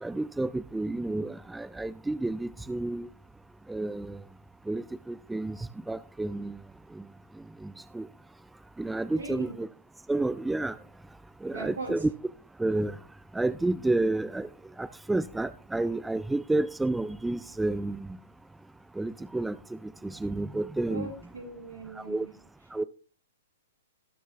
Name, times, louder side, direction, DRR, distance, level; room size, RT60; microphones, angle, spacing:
voice 1, 0.0-3.1 3.7-4.2 4.7-6.6 7.0-7.1 7.6-8.1 8.8-9.7 10.1-10.8 11.4-12.1 12.6-13.0 13.3-14.5 14.8-18.2 19.0-19.6 20.0-21.1 22.1-22.3 22.7-22.8, right 2 dB, 5° right, 0.4 m, -30 dB
voice 2, 9.1-9.5 11.5-12.0 20.9-22.3, right 3 dB, 85° right, 6.4 m, -39 dB
18.0 x 6.2 x 3.4 m
figure-of-eight pair, 115°, 0 cm